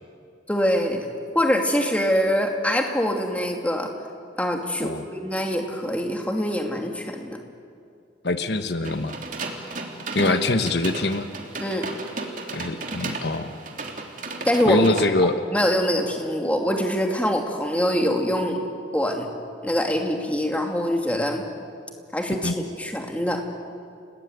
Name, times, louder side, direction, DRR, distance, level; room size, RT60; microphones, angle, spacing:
voice 1, 0.5-1.1 1.3-3.9 4.4-7.4 10.2-10.3 11.6-11.9 14.5-14.9 15.5-18.6 18.9-19.3 19.6-21.4 22.1-22.5 22.8-23.4, equal, 10° left, 2 dB, 2.5 m, -24 dB
voice 2, 8.2-9.2 10.1-11.3 12.5-13.5 14.7-15.3 22.4-22.6, left 2 dB, 65° left, 9 dB, 1.2 m, -23 dB
sound 1, 8.8-15.1, right 3 dB, 45° right, 3.0 m, -34 dB
29.5 x 19.5 x 9.4 m, 2.4 s
head